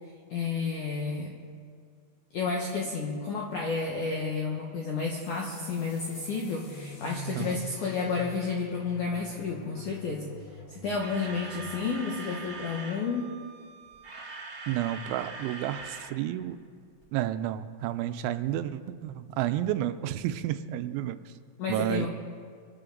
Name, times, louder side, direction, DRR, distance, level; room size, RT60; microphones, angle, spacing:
voice 1, 0.3-1.3 2.3-10.3 10.7-13.4 21.6-22.1, left 4 dB, 75° left, 0 dB, 1.8 m, -31 dB
sound 1, 5.2-12.5, left 1 dB, 50° left, 1.3 m, -44 dB
Camera, 11.0-13.1 13.8-16.1 16.4-16.5 17.0-17.1, right 3 dB, 40° right, 1.6 m, -42 dB
Wind instrument woodwind instrument, 11.1-15.8, right 6 dB, 65° right, 2.5 m, -49 dB
voice 2, 14.7-16.6 17.1-21.3 21.7-22.1, right 12 dB, 85° right, 11 dB, 2.9 m, -31 dB
24.5 x 12.5 x 3.9 m, 2.1 s
omnidirectional pair, 5.4 m